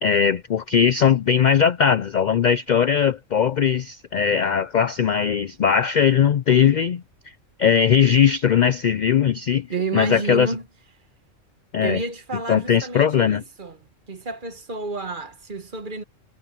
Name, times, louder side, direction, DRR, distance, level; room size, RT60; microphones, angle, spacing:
voice 1, 0.0-7.0 7.6-9.7 9.9-10.5 11.7-12.0 12.5-13.4, left 7 dB, 85° left, 0.4 m, -19 dB
voice 2, 9.7-10.6 11.8-13.8 14.1-16.0, right 3 dB, 40° right, 1.4 m, -30 dB
omnidirectional pair, 1.3 m